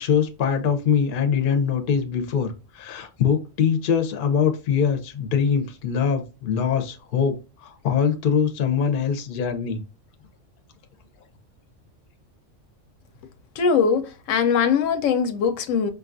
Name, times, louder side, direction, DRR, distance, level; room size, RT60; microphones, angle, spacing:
voice 1, 0.0-7.4 7.6-9.8, left 7 dB, 55° left, 0.7 m, -23 dB
voice 2, 13.6-15.9, left 6 dB, 85° left, 1.0 m, -21 dB
5.1 x 2.3 x 2.5 m
omnidirectional pair, 1.3 m